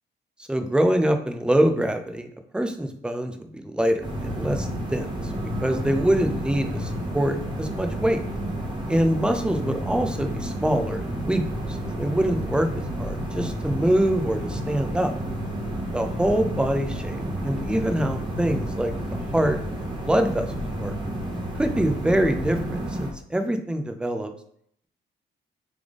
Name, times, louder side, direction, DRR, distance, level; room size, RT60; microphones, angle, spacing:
voice 1, 0.5-2.3 2.5-5.3 5.6-8.2 8.9-11.4 11.7-12.7 13.0-15.1 15.9-20.5 20.8-21.0 21.6-24.3, right 1 dB, 5° right, 6 dB, 0.5 m, -24 dB
sound 1, 4.0-23.1, right 1 dB, 20° right, 1.2 m, -30 dB
3.5 x 3.4 x 3.6 m, 0.67 s
cardioid pair, 90°, 20 cm